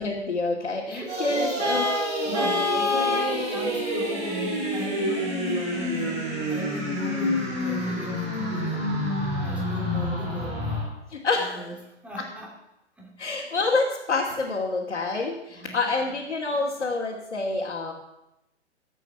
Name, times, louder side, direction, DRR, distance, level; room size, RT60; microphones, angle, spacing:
voice 1, 0.0-1.9 2.4-2.5 11.1-11.7 12.2-12.3 13.2-17.9, left 3 dB, 70° left, -4 dB, 2.6 m, -27 dB
voice 2, 0.9-1.6 2.2-8.9 9.4-10.8 11.4-11.8 12.0-12.5 13.0-13.6 15.6-15.9, right 1 dB, 5° right, -2 dB, 2.8 m, -38 dB
sound 1, 1.1-10.8, equal, 20° right, 6.0 m, -28 dB
Vehicle horn car horn honking, 1.6-3.4, left 3 dB, 65° right, 4.4 m, -26 dB
17.0 x 8.2 x 5.9 m, 0.90 s
figure-of-eight pair, 125°, 35 cm